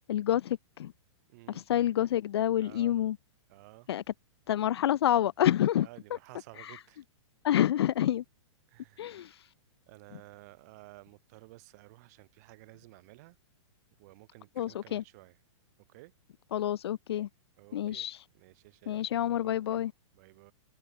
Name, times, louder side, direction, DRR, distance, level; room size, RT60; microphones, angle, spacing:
voice 1, 0.1-0.9 1.5-3.2 3.9-4.0 4.5-5.9 6.6-6.8 7.4-8.2 9.0-9.3 14.6-15.0 16.5-17.3 17.7-18.2 18.9-19.9, left 11 dB, 55° left, 0.6 m, -28 dB
voice 2, 1.3-1.7 2.6-2.9 3.5-3.9 5.8-7.0 8.7-9.5 9.9-13.4 14.0-15.4 15.9-16.1 17.6-18.1 18.3-19.8 20.1-20.5, right 23 dB, 30° right, 5.3 m, -54 dB
hypercardioid pair, 175°, 16 cm